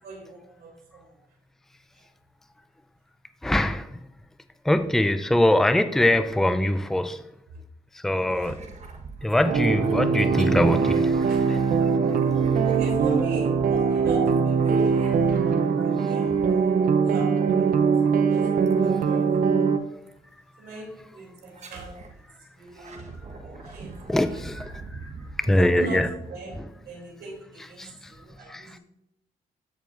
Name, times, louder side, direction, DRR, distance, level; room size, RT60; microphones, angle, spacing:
voice 1, 0.0-1.1 7.5-7.6 8.1-8.6 11.3-11.4 12.2-12.3 12.6-15.2 15.8-19.7 20.6-22.0 22.5-23.1 23.4-24.4 25.5-26.0 26.3-28.8, right 3 dB, 80° right, -1 dB, 3.0 m, -38 dB
voice 2, 3.4-3.9 4.7-7.2 8.0-8.6 9.2-11.7 24.1-24.7 25.5-26.1 27.8-27.9 28.5-28.7, left 1 dB, ahead, 9 dB, 0.5 m, -22 dB
sound 1, 8.3-15.8 16.2-17.0 18.7-19.1 20.1-20.2 21.4-22.2 22.6-27.0, right 3 dB, 45° right, 1.2 m, -43 dB
sound 2, 9.4-19.8, right 6 dB, 65° right, 0.7 m, -22 dB
14.0 x 4.6 x 2.5 m, 0.86 s
cardioid pair, 95°, 16 cm